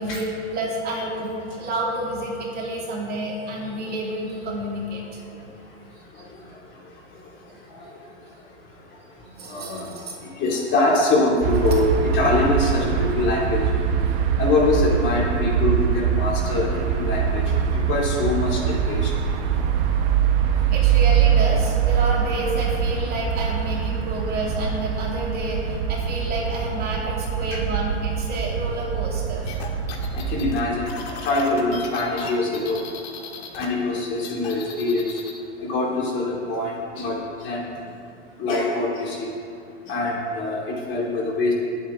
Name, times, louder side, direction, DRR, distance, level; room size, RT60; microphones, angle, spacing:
voice 1, 0.0-1.3 1.6-5.0 9.2-10.1 20.7-29.4 32.2-32.3, right 1 dB, 25° right, -3 dB, 2.8 m, -29 dB
voice 2, 9.4-9.9 10.2-13.6 14.4-17.5 17.9-18.6 18.9-19.1 27.5-27.6 30.1-30.9 31.2-32.8 33.5-35.2 35.6-37.7 38.4-39.3 39.9-41.5, left 2 dB, 35° left, -3 dB, 2.9 m, -24 dB
sound 1, 11.4-30.6, right 8 dB, 50° right, 1.4 m, -23 dB
sound 2, 29.5-33.7 34.0-35.4, left 6 dB, 60° left, 1.9 m, -37 dB
19.5 x 8.6 x 3.8 m, 2.6 s
hypercardioid pair, 130°, 35 cm